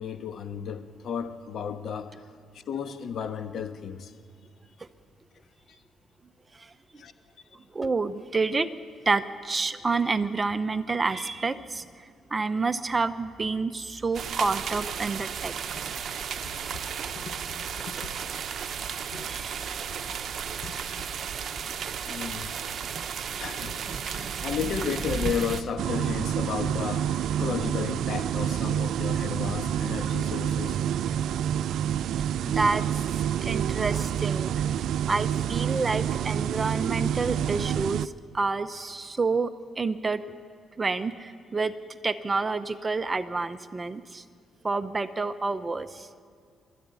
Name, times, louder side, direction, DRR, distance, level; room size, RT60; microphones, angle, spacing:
voice 1, 0.0-2.3 2.5-4.1 5.7-5.8 7.0-7.1 16.7-16.8 17.1-17.4 17.9-18.4 19.1-19.3 20.1-20.2 20.6-20.7 21.6-22.5 23.4-30.8, left 7 dB, 60° left, 1.2 m, -34 dB
voice 2, 7.7-8.7 9.1-11.8 12.3-15.8 19.2-19.6 32.4-34.6 35.1-40.4 40.8-41.7 42.0-44.2 44.6-46.1, right 3 dB, 25° right, 0.8 m, -29 dB
sound 1, 14.1-25.6, right 7 dB, 60° right, 0.9 m, -34 dB
sound 2, 25.8-38.1, right 9 dB, 75° right, 0.4 m, -28 dB
20.5 x 13.5 x 9.6 m
cardioid pair, 100°, 0 cm